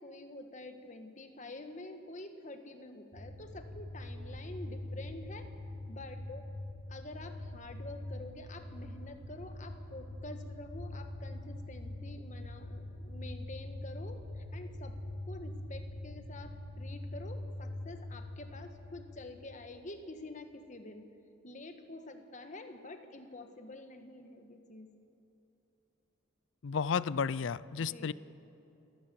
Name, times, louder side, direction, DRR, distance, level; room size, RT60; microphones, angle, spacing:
voice 1, 0.0-5.5 5.9-6.5 6.9-15.0 15.3-21.0 21.4-24.9 27.8-28.1, left 2 dB, 35° left, 6 dB, 1.4 m, -48 dB
sound 1, 3.1-19.9, left 1 dB, 60° right, 2.5 m, -43 dB
voice 2, 26.6-28.1, left 6 dB, 65° left, 19 dB, 0.4 m, -32 dB
29.5 x 14.5 x 7.0 m, 3.0 s
head